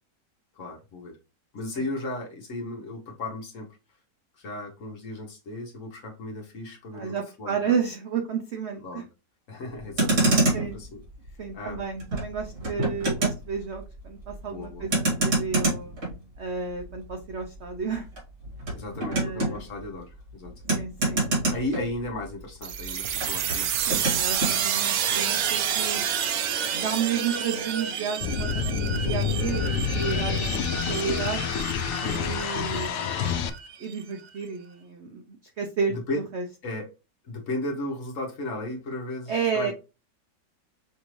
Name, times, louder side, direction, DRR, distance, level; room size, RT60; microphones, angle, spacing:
voice 1, 0.6-1.2 1.5-3.7 4.3-7.8 8.7-9.0 9.5-11.0 11.5-11.8 14.5-14.8 18.8-20.5 21.3-24.0 32.0-32.5 35.9-36.2 36.6-36.9 37.2-39.7, left 2 dB, 50° left, 1.2 m, -35 dB
voice 2, 6.9-9.1 10.5-10.8 11.4-15.9 16.4-18.1 19.1-19.6 20.7-21.2 23.9-26.1 26.7-31.4 32.0-33.1 33.8-36.0 36.3-36.4 39.3-39.7, right 6 dB, 70° right, 0.6 m, -32 dB
Motor vehicle (road), 9.8-22.4 22.7-24.6, right 2 dB, 50° right, 2.3 m, -28 dB
sound 1, 22.6-34.0, right 8 dB, 90° right, 1.3 m, -29 dB
sound 2, 28.2-33.5, left 7 dB, 80° left, 0.7 m, -28 dB
5.8 x 2.6 x 3.1 m
omnidirectional pair, 1.9 m